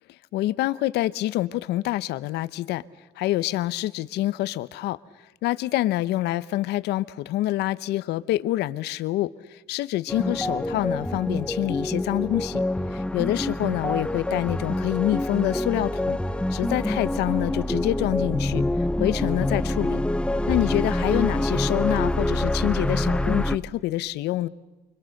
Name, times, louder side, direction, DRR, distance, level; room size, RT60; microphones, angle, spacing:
voice 1, 0.3-2.8 3.2-5.0 5.4-12.6 12.9-16.2 16.5-18.6 19.0-20.0 20.5-24.5, left 15 dB, 80° left, 16 dB, 0.9 m, -26 dB
sound 1, 10.1-23.6, left 1 dB, 5° left, 0.8 m, -26 dB
29.5 x 25.0 x 6.6 m, 1.1 s
cardioid pair, 110°, 17 cm